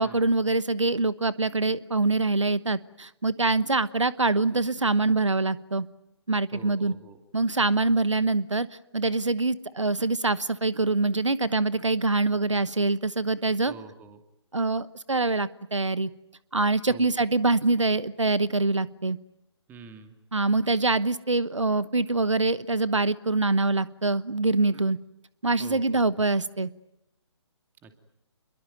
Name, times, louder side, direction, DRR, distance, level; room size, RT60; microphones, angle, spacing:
voice 1, 0.0-5.9 6.3-6.9 7.3-8.7 8.9-13.7 14.5-16.1 16.5-19.2 20.3-25.0 25.4-26.7, right 3 dB, 90° right, 17 dB, 1.1 m, -24 dB
voice 2, 6.5-7.2 13.6-14.2 16.9-17.2 19.7-20.1 25.6-26.1 27.8-28.0, right 5 dB, 10° right, 7 dB, 2.4 m, -46 dB
27.5 x 22.5 x 9.3 m, 0.84 s
figure-of-eight pair, 140°, 15 cm